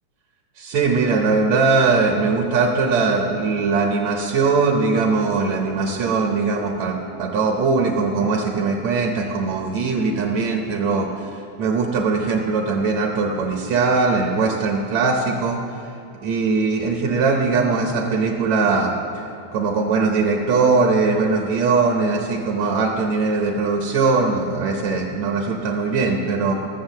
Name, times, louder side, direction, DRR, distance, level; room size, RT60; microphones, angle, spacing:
voice 1, 0.6-15.6 16.2-19.2 19.5-26.6, right 4 dB, 70° right, 1 dB, 2.0 m, -20 dB
14.5 x 7.8 x 6.5 m, 2.6 s
omnidirectional pair, 3.5 m